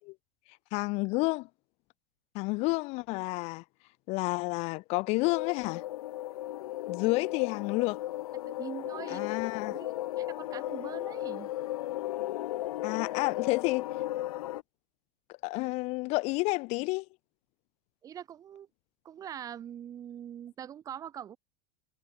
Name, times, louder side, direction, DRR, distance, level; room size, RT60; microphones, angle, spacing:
voice 1, 0.7-1.5 2.3-3.6 4.1-5.8 6.9-8.0 9.1-9.8 12.8-13.9 15.4-17.0, left 25 dB, 35° left, 6.3 m, -30 dB
sound 1, 5.2-14.6, left 15 dB, 70° left, 1.7 m, -35 dB
voice 2, 8.6-9.3 9.7-11.5 18.0-18.7 19.0-21.4, right 9 dB, 20° right, 4.9 m, -43 dB
supercardioid pair, 180°, 19 cm